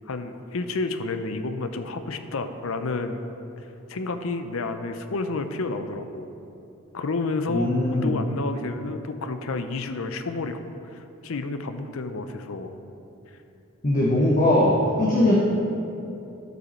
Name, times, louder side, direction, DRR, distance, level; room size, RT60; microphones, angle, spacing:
voice 1, 0.1-3.2 3.6-6.3 6.9-12.8, left 3 dB, 70° left, 8 dB, 0.6 m, -30 dB
voice 2, 7.5-8.1 13.8-15.4, left 1 dB, 35° left, -4 dB, 1.0 m, -20 dB
12.0 x 5.5 x 4.4 m, 2.8 s
head